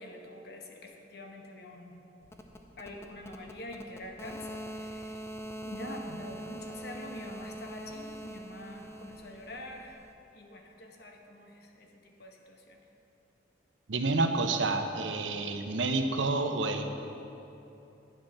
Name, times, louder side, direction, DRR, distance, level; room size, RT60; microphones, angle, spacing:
voice 1, 0.0-1.9 2.8-10.0 10.3-12.9, left 1 dB, 55° left, 2 dB, 1.1 m, -46 dB
sound 1, 2.2-10.1, equal, 15° left, 0.5 m, -43 dB
voice 2, 13.9-16.8, right 3 dB, 85° right, 6 dB, 0.8 m, -29 dB
10.0 x 7.8 x 5.9 m, 3.0 s
head